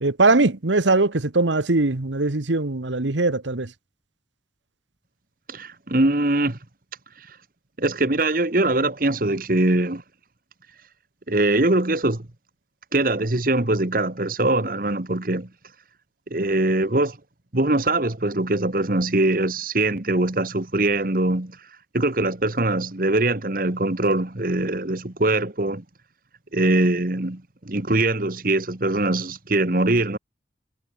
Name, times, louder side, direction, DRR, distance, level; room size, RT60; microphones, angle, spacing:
voice 1, 0.0-3.7, right 3 dB, 85° right, 1.3 m, -21 dB
voice 2, 5.5-6.6 7.3-7.4 7.8-10.0 11.3-12.3 12.9-15.5 16.3-17.2 17.5-21.6 21.9-25.8 26.5-30.2, right 2 dB, 50° right, 1.5 m, -22 dB
head